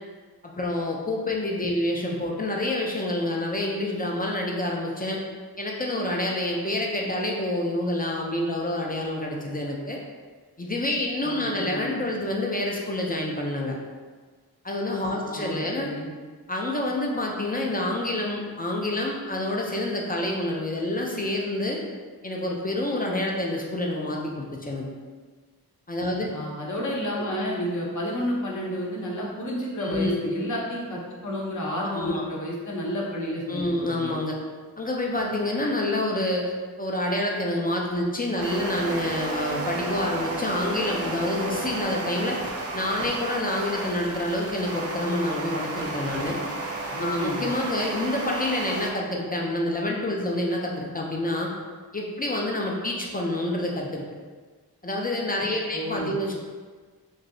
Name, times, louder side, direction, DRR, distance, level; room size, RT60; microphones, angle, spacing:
voice 1, 0.4-5.2 5.6-10.0 10.6-13.7 14.6-15.9 16.5-21.8 22.2-24.9 25.9-26.3 29.8-30.4 31.8-32.3 33.5-34.4 34.8-36.5 36.8-42.4 42.7-46.4 47.0-51.5 51.9-54.0 54.8-56.3, left 1 dB, 25° left, -1 dB, 0.4 m, -28 dB
voice 2, 11.2-11.9 15.4-16.1 26.3-34.1 46.9-47.5 55.7-56.3, equal, 50° left, -3 dB, 0.7 m, -31 dB
sound 1, 38.4-48.9, right 2 dB, 40° right, 0.4 m, -32 dB
3.0 x 2.7 x 2.6 m, 1.5 s
wide cardioid pair, 90°, 37 cm